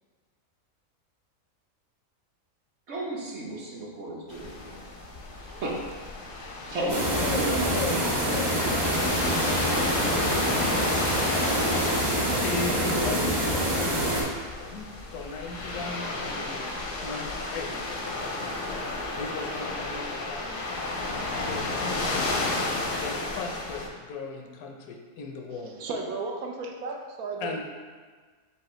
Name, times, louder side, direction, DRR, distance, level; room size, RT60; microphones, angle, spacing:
voice 1, 2.9-4.8 5.5-5.7 6.7-7.0 7.3-7.7, right 2 dB, 55° right, -4 dB, 1.0 m, -33 dB
sound 1, 4.3-23.9, left 2 dB, 55° left, 0.6 m, -32 dB
voice 2, 6.7-7.4 7.7-9.4 12.0-16.0 16.3-16.7 17.0-18.0 19.2-20.8 21.3-22.2 22.9-25.8 27.4-27.6, left 4 dB, 85° left, 2 dB, 1.1 m, -37 dB
sound 2, 6.9-14.2, equal, 25° right, 0.6 m, -26 dB
voice 3, 25.5-27.6, right 3 dB, 90° right, 2 dB, 1.1 m, -35 dB
5.2 x 2.3 x 4.2 m, 1.5 s
omnidirectional pair, 1.5 m